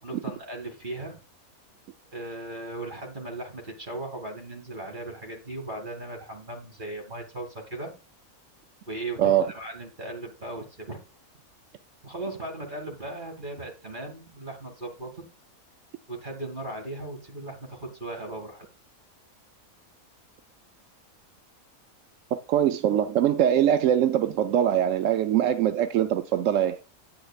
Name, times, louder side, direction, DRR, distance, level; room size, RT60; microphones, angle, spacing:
voice 1, 0.0-1.2 2.1-7.9 8.9-11.0 12.0-15.3 16.1-18.7, right 2 dB, 35° right, 2.1 m, -37 dB
voice 2, 22.3-26.8, right 10 dB, 65° right, 0.9 m, -22 dB
9.7 x 8.7 x 2.4 m
omnidirectional pair, 1.6 m